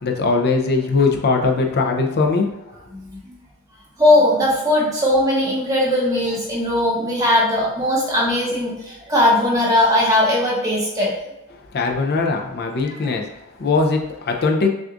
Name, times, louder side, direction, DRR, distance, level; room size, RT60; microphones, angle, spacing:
voice 1, 0.0-2.5 11.7-13.3 13.6-14.7, left 3 dB, 45° left, 2 dB, 0.5 m, -20 dB
voice 2, 4.0-11.1 12.8-13.1, left 1 dB, 15° right, -5 dB, 1.0 m, -19 dB
6.0 x 2.4 x 2.5 m, 0.95 s
head